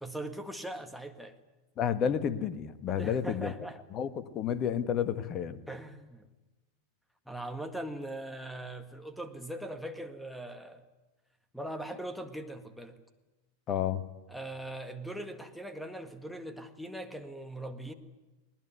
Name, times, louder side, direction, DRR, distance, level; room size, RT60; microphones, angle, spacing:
voice 1, 0.0-1.4 2.9-3.8 5.7-6.3 7.3-10.9 11.5-13.0 14.3-17.9, right 1 dB, ahead, 9 dB, 1.9 m, -40 dB
voice 2, 1.8-3.5 3.9-5.6 13.7-14.0, left 8 dB, 30° left, 12 dB, 1.5 m, -31 dB
21.0 x 20.5 x 9.5 m, 1.1 s
figure-of-eight pair, 90°, 0 cm